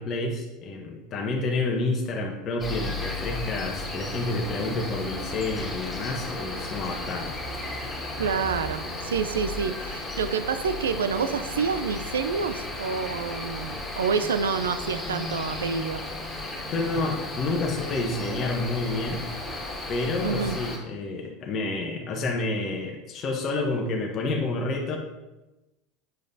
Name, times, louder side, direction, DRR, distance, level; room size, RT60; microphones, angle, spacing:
voice 1, 0.0-7.3 16.7-19.2 19.9-25.0, left 2 dB, 45° left, 1 dB, 1.0 m, -29 dB
Cricket, 2.6-20.8, left 2 dB, 20° left, 2.0 m, -34 dB
voice 2, 8.2-16.0 20.2-20.6, right 6 dB, 85° right, 10 dB, 0.4 m, -28 dB
7.8 x 5.1 x 2.7 m, 1.0 s
hypercardioid pair, 85°, 0 cm